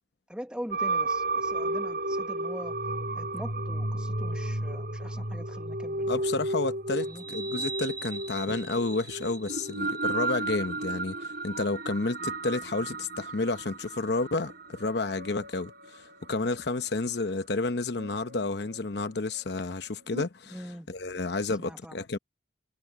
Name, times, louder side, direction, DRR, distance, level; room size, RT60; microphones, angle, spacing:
voice 1, 0.3-2.7 3.2-6.1 7.0-7.3 20.5-20.9 21.6-22.0, equal, 5° right, 1.3 m, -42 dB
sound 1, 0.7-20.2, right 2 dB, 50° right, 3.7 m, -34 dB
voice 2, 6.1-20.6 20.9-22.2, left 3 dB, 60° left, 0.9 m, -31 dB
head